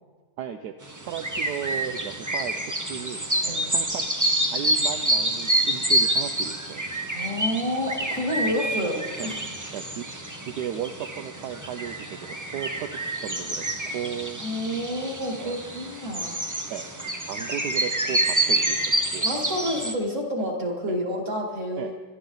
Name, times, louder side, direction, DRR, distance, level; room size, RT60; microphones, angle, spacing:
voice 1, 0.4-0.7 1.1-3.2 3.7-4.1 4.5-6.9 9.2-9.3 9.7-10.1 10.5-14.4 15.4-15.6 16.7-16.9 17.2-19.3 20.9-21.0 21.8-21.9, right 9 dB, 65° right, 6 dB, 1.1 m, -35 dB
sound 1, 0.8-19.9, right 1 dB, 20° right, 0.5 m, -27 dB
voice 2, 7.1-9.6 14.4-16.4 19.2-22.0, equal, 35° right, 0 dB, 3.0 m, -29 dB
25.5 x 11.5 x 4.0 m, 1.4 s
omnidirectional pair, 2.1 m